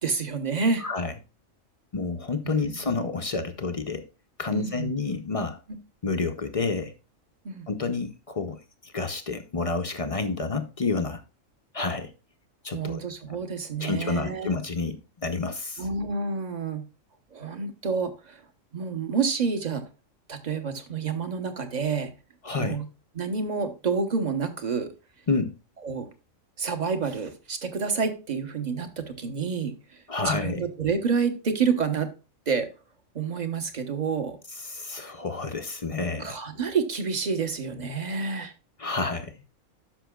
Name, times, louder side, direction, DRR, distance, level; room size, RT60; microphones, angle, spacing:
voice 1, 0.0-0.8 2.4-2.9 4.5-4.9 7.4-7.7 12.7-14.5 15.8-16.8 17.3-18.4 18.7-19.9 20.3-22.1 22.6-22.9 23.1-24.9 25.8-26.1 26.6-32.1 32.5-32.7 33.1-34.4 35.8-35.9 36.2-38.5, right 5 dB, 35° right, 1.0 m, -29 dB
voice 2, 0.8-1.1 1.9-4.0 4.4-5.6 6.0-6.9 7.7-11.2 11.7-12.1 12.6-13.0 13.8-15.8 22.4-22.8 25.3-25.6 30.1-30.6 34.6-36.4 38.8-39.3, left 4 dB, 40° left, 0.5 m, -29 dB
13.0 x 5.9 x 2.3 m
omnidirectional pair, 1.4 m